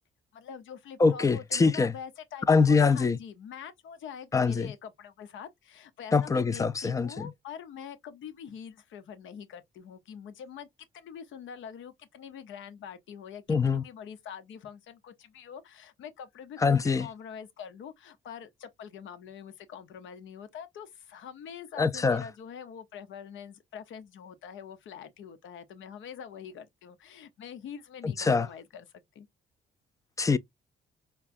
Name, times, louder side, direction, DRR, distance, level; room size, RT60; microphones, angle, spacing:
voice 1, 0.3-10.7 10.9-28.9 29.1-29.3, left 8 dB, 75° left, 0.8 m, -44 dB
voice 2, 1.0-1.9 2.5-3.2 4.3-4.7 6.1-7.3 13.5-13.8 16.6-17.1 21.8-22.2 28.0-28.5 30.2-30.4, left 4 dB, 15° left, 0.4 m, -24 dB
4.6 x 2.2 x 2.5 m
cardioid pair, 90°, 20 cm